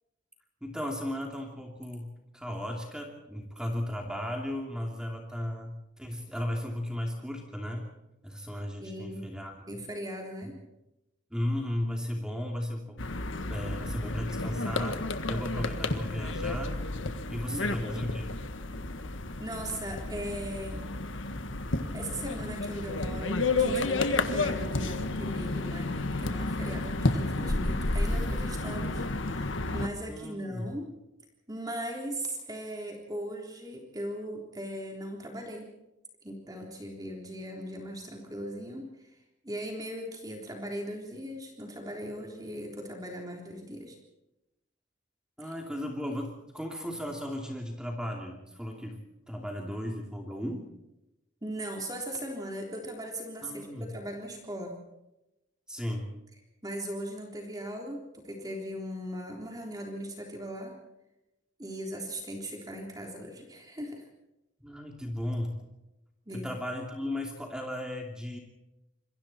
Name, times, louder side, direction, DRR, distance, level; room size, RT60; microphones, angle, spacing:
voice 1, 0.6-7.9 8.2-9.8 10.4-10.5 11.3-13.1 13.5-16.8 17.3-18.3 30.1-30.7 45.4-49.0 49.3-50.7 53.4-53.9 55.7-56.1 64.6-65.6 66.3-68.4, left 1 dB, 5° right, 1 dB, 2.9 m, -35 dB
voice 2, 8.8-9.3 9.7-10.5 17.4-18.1 19.4-20.9 21.9-30.9 31.5-35.7 36.2-38.9 39.4-44.0 51.4-54.7 56.6-60.8 61.6-64.0 66.3-66.5, equal, 20° right, 1 dB, 3.6 m, -39 dB
sound 1, 13.0-29.9, left 2 dB, 85° left, 1.6 m, -31 dB
27.0 x 22.0 x 4.4 m, 0.93 s
head